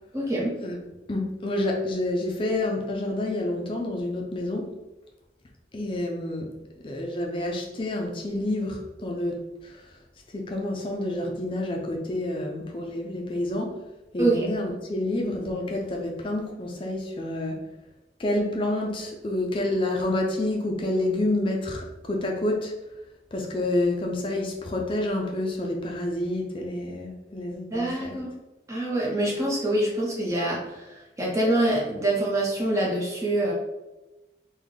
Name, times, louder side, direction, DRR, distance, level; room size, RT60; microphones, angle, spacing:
voice 1, 0.1-0.5 14.2-14.5 27.7-28.3 28.7-33.5, right 1 dB, 20° right, -4 dB, 0.8 m, -25 dB
voice 2, 1.1-4.7 5.7-6.5 6.8-9.8 10.3-13.8 14.1-17.6 18.2-22.7 23.3-28.1, left 1 dB, 30° left, 0 dB, 0.4 m, -28 dB
3.5 x 2.3 x 3.6 m, 1.0 s
head